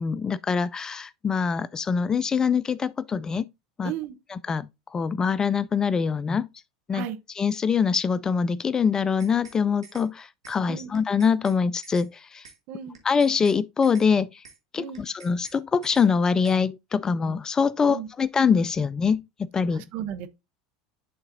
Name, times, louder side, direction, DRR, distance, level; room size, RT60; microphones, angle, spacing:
voice 1, 0.0-3.4 3.8-3.9 4.3-6.5 6.9-7.1 7.4-12.5 13.0-14.4 14.7-19.2 19.5-19.8, left 6 dB, 25° left, 0.3 m, -24 dB
voice 2, 3.8-4.2 6.9-7.2 10.7-10.9 12.7-13.0 14.8-15.0 17.9-18.1 19.7-20.3, right 10 dB, 55° right, 0.9 m, -34 dB
sound 1, 9.0-9.6 9.8-10.1 10.4-10.6 10.9-11.6 11.8-12.1 12.4-12.6 12.9-13.6 13.8-14.1 14.4-14.6 14.9-15.6 15.8-16.1 16.4-16.6, right 5 dB, 90° right, 1.6 m, -49 dB
11.0 x 3.9 x 2.6 m
hypercardioid pair, 80°, 3 cm